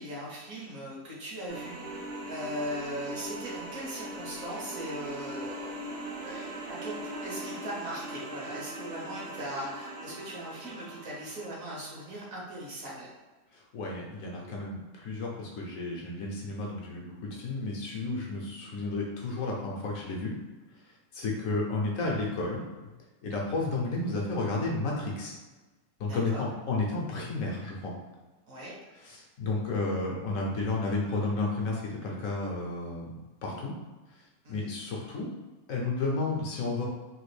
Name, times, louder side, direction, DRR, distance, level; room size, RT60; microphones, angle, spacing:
voice 1, 0.0-1.8 2.3-5.7 6.2-13.1 26.0-26.4 28.4-28.8 34.4-34.7, right 1 dB, 60° right, -5 dB, 1.4 m, -39 dB
sound 1, 1.5-12.3, right 1 dB, 90° right, 1.3 m, -40 dB
voice 2, 13.7-20.3 21.1-22.6 23.2-25.4 26.0-27.9 29.0-33.7 34.5-35.3 35.7-36.9, left 3 dB, 70° left, -2 dB, 1.0 m, -32 dB
3.3 x 2.5 x 3.2 m, 1.2 s
omnidirectional pair, 1.6 m